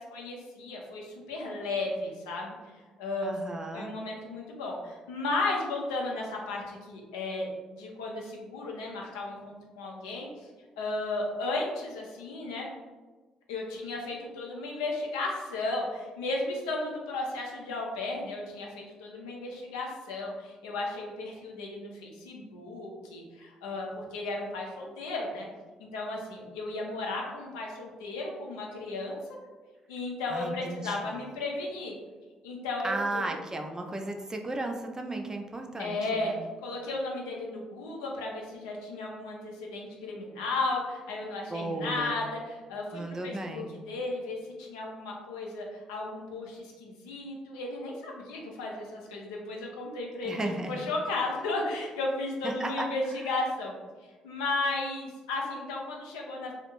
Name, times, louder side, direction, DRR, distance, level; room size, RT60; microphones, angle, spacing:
voice 1, 0.0-3.3 3.7-10.3 10.8-12.7 13.5-25.5 25.8-29.2 29.9-31.9 32.4-33.3 35.8-36.3 36.6-50.4 50.7-53.8 54.2-56.5, left 2 dB, 80° left, -1 dB, 0.4 m, -34 dB
voice 2, 3.2-3.9 30.3-31.0 32.8-36.4 41.5-42.2 42.9-43.7 50.2-50.9 52.4-52.9, right 2 dB, 20° right, 4 dB, 0.4 m, -34 dB
2.4 x 2.1 x 2.9 m, 1.3 s
hypercardioid pair, 45°, 3 cm